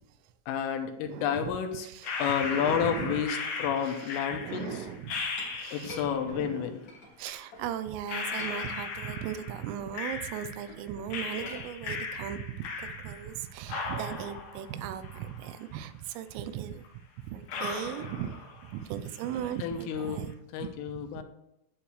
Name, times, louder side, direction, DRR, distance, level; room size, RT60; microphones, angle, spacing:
voice 1, 0.5-1.9 2.2-4.8 5.7-6.8 19.6-20.3 20.5-21.2, left 8 dB, 85° left, 6 dB, 3.5 m, -30 dB
voice 2, 1.0-1.5 1.8-2.1 2.5-3.2 3.8-4.0 4.4-5.2 5.5-6.8 7.2-16.8 17.2-20.3 20.6-21.2, right 9 dB, 85° right, 12 dB, 3.2 m, -38 dB
sound 1, 2.0-6.2 7.3-7.4 8.1-10.8 11.1-13.4 13.7-15.8 16.1-16.2 16.8-16.9 17.5-18.8 19.1-19.6, left 4 dB, 70° left, 2.3 m, -37 dB
Chink clink, 5.0-7.7 8.1-9.2 9.5-13.6, left 2 dB, 40° left, 1.7 m, -48 dB
11.0 x 8.4 x 3.2 m, 0.81 s
omnidirectional pair, 5.7 m